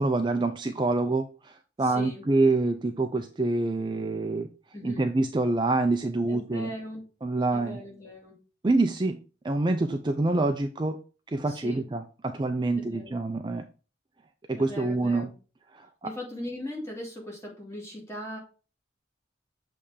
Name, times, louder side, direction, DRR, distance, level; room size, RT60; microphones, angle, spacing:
voice 1, 0.0-4.5 4.8-6.7 7.2-7.8 8.6-9.2 9.4-11.0 11.3-13.6 14.5-15.3 15.7-15.9, right 2 dB, 25° right, 6 dB, 0.4 m, -26 dB
voice 2, 1.8-2.2 4.7-5.1 6.3-7.0 7.5-8.4 11.5-11.9 12.8-13.2 14.6-15.3 16.0-18.4, left 1 dB, 15° left, -3 dB, 2.2 m, -39 dB
7.0 x 3.4 x 4.9 m, 0.35 s
head